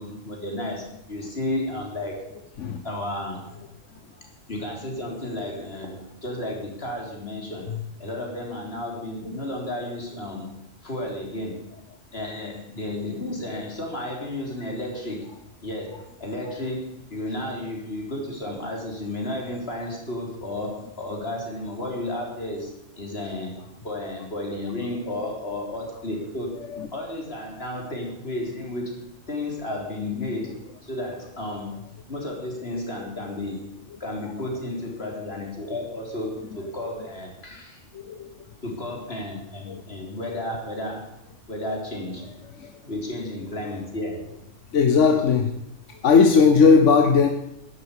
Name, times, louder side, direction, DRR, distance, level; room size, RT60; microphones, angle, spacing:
voice 1, 0.0-2.3 2.8-3.6 4.5-10.5 10.8-11.6 12.1-15.3 15.6-22.7 23.0-26.6 26.9-28.9 29.3-30.6 30.8-31.8 32.1-33.7 34.0-37.8 38.6-41.1 41.5-42.3 42.8-44.3, left 1 dB, 55° left, 0 dB, 3.8 m, -32 dB
voice 2, 37.9-38.3 39.7-39.8 42.6-42.7 44.7-45.5 45.9-47.3, left 5 dB, 80° left, 6 dB, 1.4 m, -18 dB
12.0 x 10.5 x 8.5 m, 0.82 s
omnidirectional pair, 1.2 m